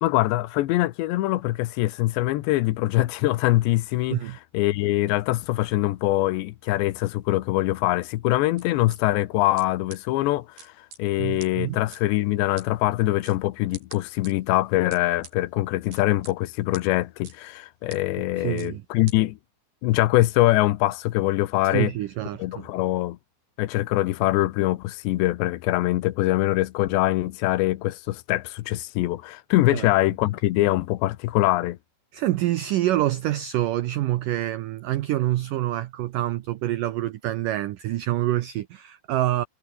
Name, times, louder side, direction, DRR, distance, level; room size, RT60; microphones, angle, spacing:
voice 1, 0.0-4.2 4.5-19.4 19.8-21.9 22.4-23.2 23.6-31.8, left 17 dB, 85° left, 3.2 m, -23 dB
sound 1, 8.6-9.0 9.6-9.7 9.9-10.0 10.6-11.0 11.4-11.5 11.9-12.0 12.6-12.7 13.2-13.4 13.7-14.3 14.9-15.3 15.9-16.3 16.7-16.8 17.2-17.4 17.9-18.0 18.6-18.7 19.1-19.2, right 5 dB, 60° right, 7.6 m, -43 dB
voice 2, 11.2-11.8 18.4-18.8 21.6-22.7 29.7-29.9 32.1-39.4, right 14 dB, 85° right, 1.9 m, -26 dB
omnidirectional pair, 5.1 m